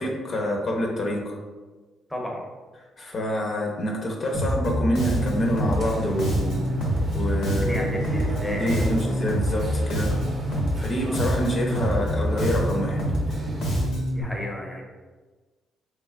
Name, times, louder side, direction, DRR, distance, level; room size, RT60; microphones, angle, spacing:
voice 1, 0.0-1.3 3.0-6.6 7.1-8.0 8.4-10.1 10.8-13.0, equal, 45° left, 0 dB, 0.7 m, -27 dB
voice 2, 2.1-2.4 7.4-9.2 14.1-14.8, left 1 dB, 5° left, -1 dB, 0.7 m, -33 dB
Bass guitar, 4.3-14.2, equal, 80° left, 1.0 m, -26 dB
sound 1, 5.1-13.9, right 2 dB, 35° right, 0.6 m, -35 dB
3.6 x 3.2 x 2.4 m, 1.3 s
cardioid pair, 90°, 0 cm